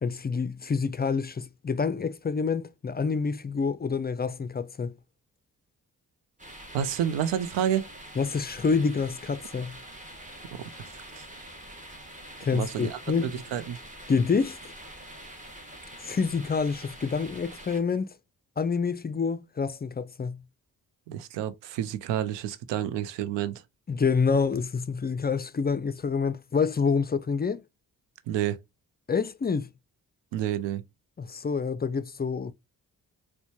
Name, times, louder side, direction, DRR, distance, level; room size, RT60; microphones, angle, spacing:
voice 1, 0.0-4.9 8.2-9.8 12.4-13.4 14.1-14.6 16.0-18.1 18.6-20.4 23.9-27.6 29.1-29.7 31.2-32.5, left 5 dB, 25° left, 0.4 m, -27 dB
sound 1, 6.4-17.8, right 1 dB, 20° right, 1.2 m, -45 dB
voice 2, 6.7-7.9 10.5-10.6 10.9-11.2 12.5-13.8 21.1-23.6 28.3-28.6 30.3-30.8, right 10 dB, 90° right, 0.5 m, -29 dB
4.3 x 2.2 x 2.8 m
supercardioid pair, 40°, 42 cm